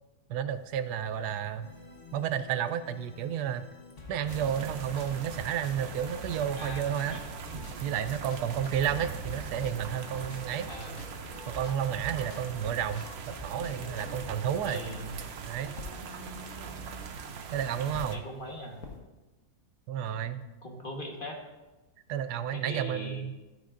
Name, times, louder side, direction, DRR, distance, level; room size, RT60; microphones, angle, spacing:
voice 1, 0.3-1.7 2.1-3.7 4.1-7.2 7.8-10.7 11.5-14.8 15.5-15.7 17.5-18.2 19.9-20.4 22.1-23.3, right 9 dB, 85° right, 12 dB, 1.1 m, -31 dB
sound 1, 0.5-2.4 2.9-6.4 6.9-8.9 9.4-15.1 15.6-19.0, left 5 dB, 65° left, 1.5 m, -53 dB
sound 2, 1.6-14.3, left 3 dB, 50° left, 1.5 m, -48 dB
sound 3, 4.3-18.2, right 6 dB, 55° right, 0.7 m, -41 dB
voice 2, 6.5-6.8 7.1-7.2 10.7-11.0 14.6-15.2 17.8-18.8 20.2-21.4 22.5-23.2, equal, 35° left, 1 dB, 1.4 m, -40 dB
13.0 x 9.3 x 2.5 m, 1.1 s
omnidirectional pair, 1.7 m